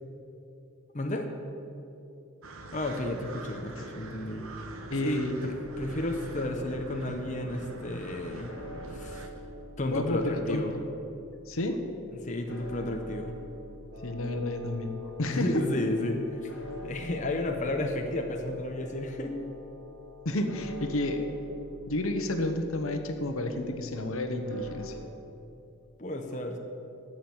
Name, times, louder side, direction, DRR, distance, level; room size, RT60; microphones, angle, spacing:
voice 1, 0.9-1.3 2.7-4.4 5.0-8.5 8.9-9.2 9.8-10.7 12.1-13.4 15.3-16.5 16.8-19.5 26.0-26.6, left 1 dB, 35° left, 3 dB, 0.8 m, -32 dB
sound 1, 2.4-9.3, right 2 dB, 80° right, 1.0 m, -44 dB
voice 2, 4.9-5.4 9.9-10.6 11.5-11.8 14.0-15.5 20.2-21.2 21.9-24.9, left 1 dB, 80° left, 6 dB, 1.1 m, -31 dB
sound 2, 5.6-25.0, equal, 60° left, 1.8 m, -48 dB
Wind instrument woodwind instrument, 13.9-21.2, left 7 dB, 55° right, 2.2 m, -47 dB
12.5 x 6.2 x 8.7 m, 2.8 s
head